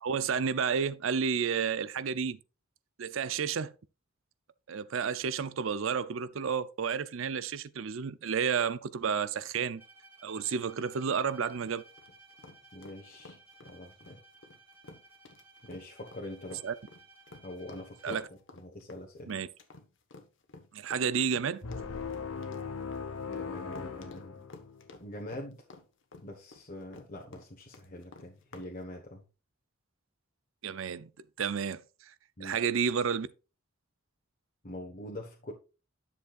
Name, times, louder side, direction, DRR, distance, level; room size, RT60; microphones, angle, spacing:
voice 1, 0.0-2.4 3.0-3.7 4.7-9.8 10.2-11.8 16.6-16.7 18.0-18.3 19.3-19.5 20.7-21.6 30.6-31.1 31.4-31.8 32.4-33.3, right 6 dB, 65° right, 0.5 m, -31 dB
Bowed string instrument, 9.8-18.5, right 3 dB, 10° right, 2.2 m, -58 dB
sound 1, 10.3-28.7, left 3 dB, 60° left, 1.3 m, -52 dB
voice 2, 12.7-13.4 13.6-14.2 15.6-16.6 17.4-19.4 23.2-24.4 25.0-25.6 26.2-29.2 32.4-32.6 34.6-35.5, left 1 dB, 40° left, 1.2 m, -44 dB
sound 2, 21.6-25.0, left 5 dB, 90° left, 1.0 m, -39 dB
10.5 x 7.0 x 2.4 m
head